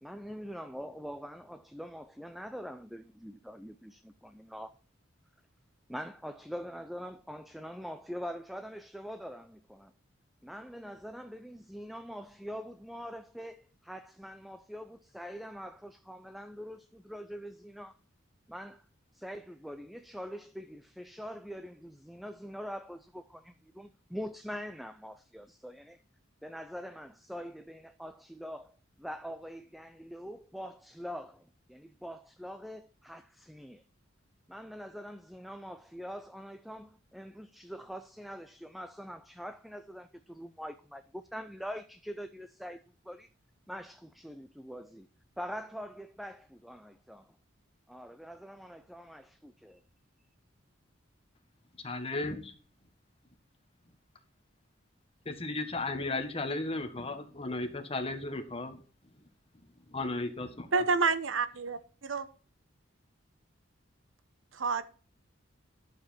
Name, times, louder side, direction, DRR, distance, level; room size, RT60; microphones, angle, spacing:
voice 1, 0.0-4.7 5.9-9.9 10.4-18.0 18.5-18.9 19.1-26.0 26.4-33.8 34.5-43.3 43.7-45.1 45.4-47.2 47.9-49.8, equal, ahead, 0.4 m, -44 dB
voice 2, 51.8-52.5 55.2-58.8 59.9-60.8, left 2 dB, 30° left, 1.5 m, -35 dB
voice 3, 60.7-61.8 62.0-62.2 64.5-64.8, right 4 dB, 75° right, 1.0 m, -28 dB
11.5 x 7.3 x 4.4 m
head